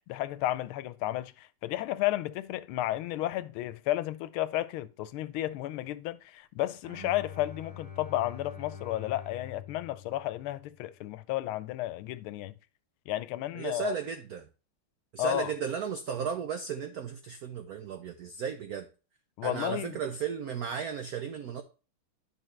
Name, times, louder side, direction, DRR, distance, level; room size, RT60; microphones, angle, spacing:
voice 1, 0.1-12.5 13.1-13.9 15.2-15.5 19.4-20.0, left 15 dB, 80° left, 1.4 m, -32 dB
Bowed string instrument, 6.8-11.0, left 7 dB, 20° right, 1.5 m, -45 dB
voice 2, 13.5-14.5 15.1-18.9 19.4-21.6, right 7 dB, 85° right, 0.8 m, -35 dB
11.0 x 4.7 x 3.2 m
omnidirectional pair, 2.4 m